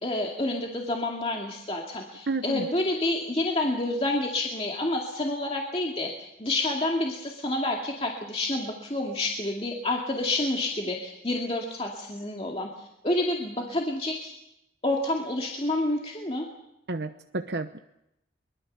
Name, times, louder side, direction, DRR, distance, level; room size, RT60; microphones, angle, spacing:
voice 1, 0.0-6.1 6.4-14.3 14.8-16.4, left 2 dB, 30° left, 0 dB, 2.3 m, -29 dB
voice 2, 2.3-2.7 16.9-17.8, right 3 dB, 70° right, 7 dB, 0.9 m, -31 dB
24.0 x 21.0 x 6.8 m, 0.83 s
head